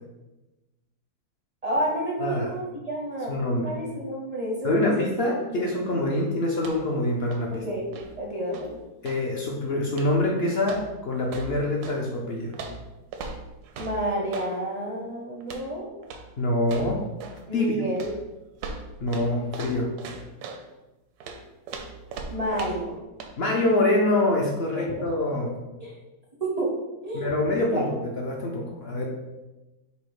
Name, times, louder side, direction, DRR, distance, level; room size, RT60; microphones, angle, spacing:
voice 1, 1.6-3.3 3.6-5.0 5.5-5.6 6.1-6.2 7.5-8.8 13.8-15.9 17.5-18.1 22.3-23.0 24.8-24.9 25.8-26.0 26.4-26.7 27.0-27.3 27.6-27.9, right 1 dB, 45° right, -3 dB, 0.5 m, -30 dB
voice 2, 2.2-2.5 3.3-3.7 4.6-7.7 9.0-12.5 16.4-17.0 17.5-17.8 19.0-19.9 23.4-25.5 27.1-29.1, left 1 dB, 65° left, 0 dB, 0.6 m, -25 dB
sound 1, 6.5-7.0 7.2-9.3 9.9-10.3 10.6-12.0 12.5-14.6 15.4-15.7 16.0-16.3 16.6-17.5 18.0-20.7 21.2-22.9 23.2-23.4, right 4 dB, 80° right, 1.1 m, -39 dB
5.3 x 2.1 x 4.7 m, 1.0 s
omnidirectional pair, 1.7 m